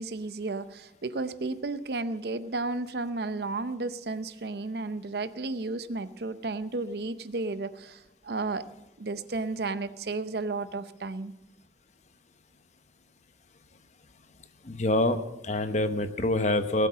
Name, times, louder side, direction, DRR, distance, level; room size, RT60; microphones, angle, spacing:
voice 1, 0.0-8.7 9.0-11.3, right 3 dB, 60° right, 14 dB, 0.7 m, -33 dB
voice 2, 14.6-16.9, left 1 dB, 40° left, 10 dB, 0.9 m, -26 dB
18.0 x 8.3 x 6.3 m, 0.97 s
head